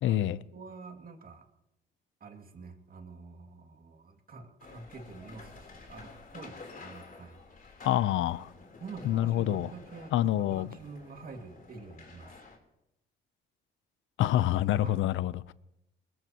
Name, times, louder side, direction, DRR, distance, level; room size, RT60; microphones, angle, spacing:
voice 1, 0.0-0.4 7.8-8.5 9.0-9.7 10.1-10.7 14.2-15.5, left 12 dB, 80° left, 0.6 m, -27 dB
voice 2, 0.5-1.4 2.2-7.4 8.8-12.4 14.8-15.0, right 4 dB, 45° right, 2.3 m, -47 dB
sound 1, 4.6-12.6, left 4 dB, 45° left, 3.6 m, -51 dB
21.0 x 21.0 x 3.0 m
cardioid pair, 90°, 20 cm